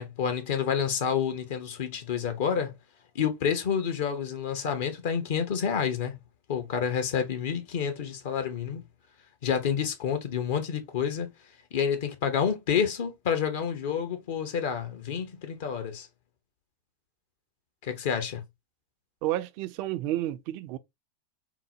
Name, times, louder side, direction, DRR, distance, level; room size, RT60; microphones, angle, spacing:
voice 1, 0.0-2.7 3.1-6.2 6.5-8.8 9.4-11.3 11.7-16.1 17.8-18.4, left 7 dB, 60° left, 0.7 m, -29 dB
voice 2, 19.2-20.8, right 14 dB, 55° right, 0.4 m, -30 dB
3.8 x 2.0 x 2.8 m
hypercardioid pair, 95°, 0 cm